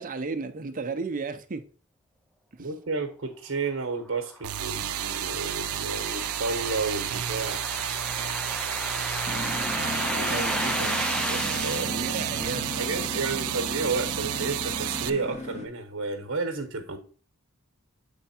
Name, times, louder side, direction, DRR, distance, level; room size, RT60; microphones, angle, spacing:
voice 1, 0.0-1.6 2.5-2.7 9.9-13.2, right 4 dB, 40° right, 0.6 m, -35 dB
voice 2, 2.6-7.6 10.2-10.3 11.6-12.0 12.8-17.0, right 3 dB, 65° right, 1.0 m, -31 dB
sound 1, 4.1-11.9, left 1 dB, 5° left, 0.4 m, -34 dB
sound 2, 4.4-15.1, right 11 dB, 90° right, 0.5 m, -31 dB
sound 3, 9.3-15.7, left 1 dB, 35° left, 0.9 m, -36 dB
8.0 x 3.4 x 4.2 m
head